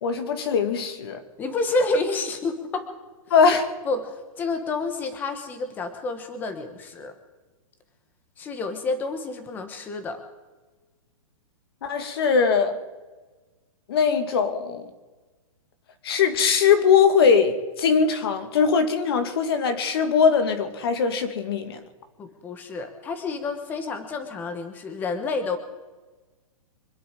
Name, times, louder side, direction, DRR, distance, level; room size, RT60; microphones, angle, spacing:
voice 1, 0.0-1.2 3.3-3.7 11.8-12.8 13.9-14.9 16.0-21.8, left 6 dB, 45° left, 8 dB, 2.1 m, -21 dB
voice 2, 1.4-2.9 3.8-7.1 8.4-10.2 22.2-25.6, left 3 dB, 10° left, 8 dB, 1.3 m, -29 dB
25.5 x 10.5 x 5.1 m, 1.2 s
hypercardioid pair, 175°, 18 cm